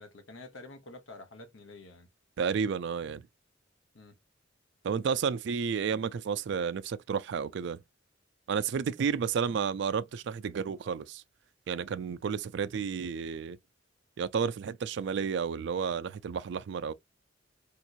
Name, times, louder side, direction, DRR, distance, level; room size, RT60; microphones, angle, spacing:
voice 1, 0.0-2.1 3.9-4.2, left 2 dB, 80° left, 1.0 m, -48 dB
voice 2, 2.4-3.2 4.8-7.8 8.5-11.2 11.7-13.6 14.2-16.9, right 6 dB, 65° right, 0.3 m, -31 dB
3.5 x 2.9 x 2.5 m
head